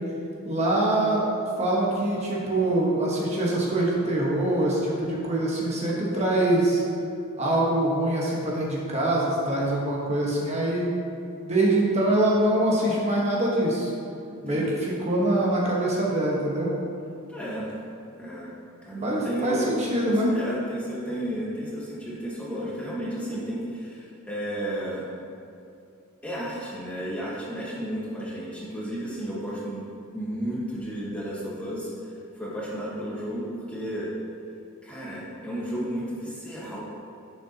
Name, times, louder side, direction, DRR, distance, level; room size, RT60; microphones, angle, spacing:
voice 1, 0.4-6.8 7.4-10.9 11.4-13.9 14.4-16.7 19.0-20.3 22.5-22.7 23.2-23.4, right 1 dB, 30° right, -5 dB, 1.3 m, -24 dB
voice 2, 14.3-14.9 17.3-17.7 18.2-18.5 18.8-25.1 26.2-31.9 32.3-34.1 34.8-36.8, equal, 5° left, -6 dB, 1.3 m, -33 dB
11.0 x 6.8 x 2.9 m, 2.6 s
head